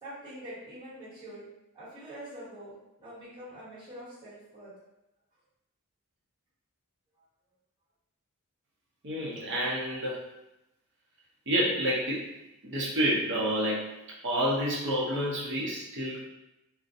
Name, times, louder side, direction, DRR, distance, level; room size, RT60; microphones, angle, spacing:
voice 1, 0.0-1.4 1.7-2.7 3.0-4.7, right 1 dB, 20° right, -11 dB, 1.4 m, -44 dB
voice 2, 9.0-10.2 11.5-12.2 12.6-13.9 14.2-16.3, equal, 55° right, -5 dB, 0.7 m, -29 dB
2.4 x 2.1 x 2.6 m, 0.91 s
head